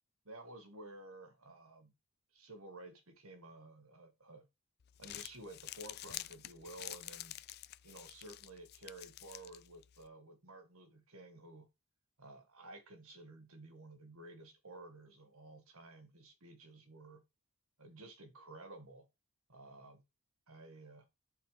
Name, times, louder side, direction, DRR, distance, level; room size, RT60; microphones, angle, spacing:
voice 1, 0.2-1.9 2.3-4.5 5.0-7.4 7.8-11.7 12.2-17.2 17.8-19.1 19.5-20.0 20.5-21.1, right 2 dB, 70° right, 1.9 m, -53 dB
Crumpling crinkling, 4.8-10.1, left 14 dB, 45° left, 0.4 m, -49 dB
11.0 x 4.4 x 3.4 m
head